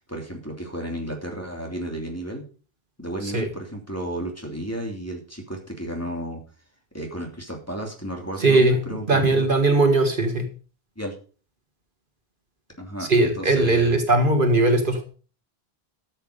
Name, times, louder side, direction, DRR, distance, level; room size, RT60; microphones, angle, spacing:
voice 1, 0.1-2.4 3.0-6.4 6.9-9.5 11.0-11.1 12.8-14.0, right 1 dB, 15° left, 1 dB, 2.8 m, -33 dB
voice 2, 8.4-8.8 9.1-10.5 13.1-15.0, right 2 dB, 55° right, 5 dB, 1.9 m, -19 dB
13.0 x 7.7 x 5.1 m, 0.39 s
omnidirectional pair, 1.1 m